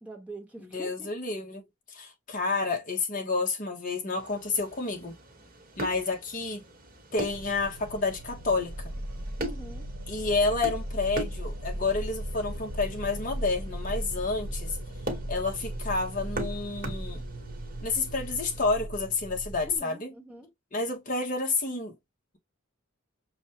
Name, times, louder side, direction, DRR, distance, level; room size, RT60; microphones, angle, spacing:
voice 1, 0.0-1.1 9.4-9.9 19.6-20.5, right 2 dB, 5° right, 1.1 m, -44 dB
voice 2, 0.6-5.1 5.8-6.6 7.1-8.9 10.1-14.8 15.3-17.2 17.8-20.1 20.7-21.9, left 3 dB, 40° left, 1.1 m, -30 dB
sound 1, 4.1-18.6, right 1 dB, 40° right, 1.1 m, -42 dB
sound 2, 7.2-19.8, right 1 dB, 85° right, 0.8 m, -37 dB
6.1 x 2.3 x 2.9 m
head